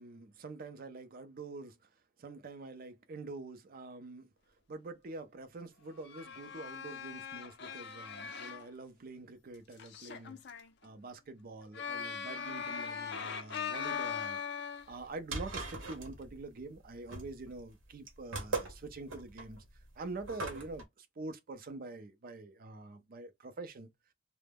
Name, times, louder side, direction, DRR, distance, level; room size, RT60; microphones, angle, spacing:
voice 1, 0.0-1.9 2.2-4.3 4.7-10.4 10.8-19.6 20.0-23.9, right 3 dB, 45° right, 0.4 m, -46 dB
sound 1, 5.9-8.7 9.8-10.7 11.7-15.0, left 7 dB, 55° left, 0.5 m, -40 dB
sound 2, 14.9-20.8, right 3 dB, 75° right, 0.9 m, -41 dB
2.2 x 2.0 x 3.3 m
head